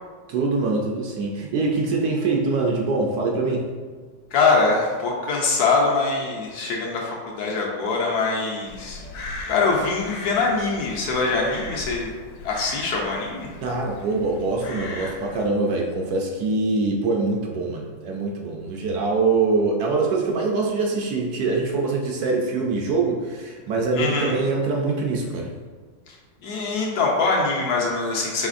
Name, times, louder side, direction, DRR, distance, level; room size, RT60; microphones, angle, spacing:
voice 1, 0.3-3.7 13.6-25.5, right 3 dB, 70° right, 0 dB, 1.0 m, -24 dB
voice 2, 4.3-9.0 9.5-12.1 12.4-13.5 23.9-24.3 26.1-26.2 26.4-28.5, left 4 dB, 70° left, -2 dB, 1.1 m, -23 dB
Crow, 8.6-15.5, left 2 dB, 90° left, 1.3 m, -38 dB
5.0 x 3.0 x 2.5 m, 1.5 s
omnidirectional pair, 1.9 m